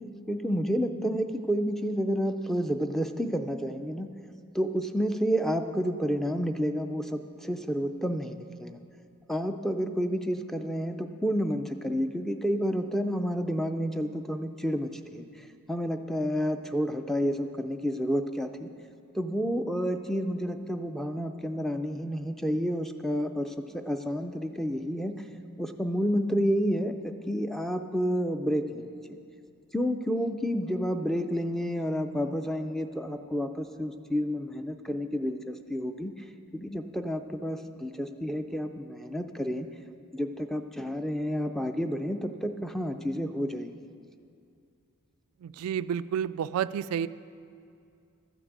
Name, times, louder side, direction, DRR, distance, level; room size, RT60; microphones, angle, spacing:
voice 1, 0.3-4.1 4.5-8.8 9.3-15.2 15.7-18.7 19.1-25.2 25.6-28.9 29.7-36.1 36.5-39.7 40.1-43.7, equal, ahead, 7 dB, 0.4 m, -30 dB
voice 2, 45.4-47.1, right 8 dB, 85° right, 16 dB, 0.3 m, -30 dB
12.5 x 6.1 x 8.0 m, 2.5 s
head